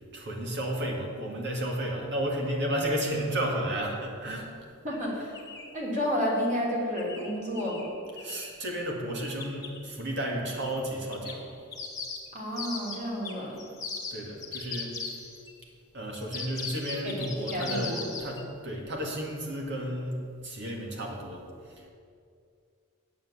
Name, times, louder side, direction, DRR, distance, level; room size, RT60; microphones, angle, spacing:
voice 1, 0.1-4.6 8.2-11.6 14.1-15.2 15.9-21.9, right 1 dB, 55° right, 0 dB, 2.1 m, -33 dB
voice 2, 4.8-5.3 5.7-7.9 12.3-13.7 17.0-17.2 17.5-18.0, equal, 35° right, -4 dB, 3.3 m, -31 dB
sound 1, 4.9-5.0 5.3-5.8 6.9-8.6 9.2-9.8 10.6-10.8 11.1-15.5 16.1-18.4, left 4 dB, 15° left, 1.6 m, -39 dB
8.7 x 7.6 x 8.3 m, 2.3 s
head